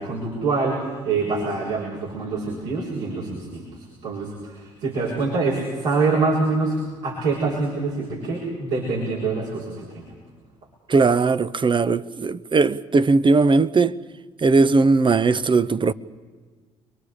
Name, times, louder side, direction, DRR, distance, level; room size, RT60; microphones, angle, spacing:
voice 1, 0.0-6.8 7.0-10.1, right 3 dB, 75° right, 6.2 m, -25 dB
voice 2, 10.9-14.0 14.4-15.9, right 4 dB, 30° right, 0.9 m, -18 dB
30.0 x 23.0 x 5.0 m
hypercardioid pair, 50°, 16 cm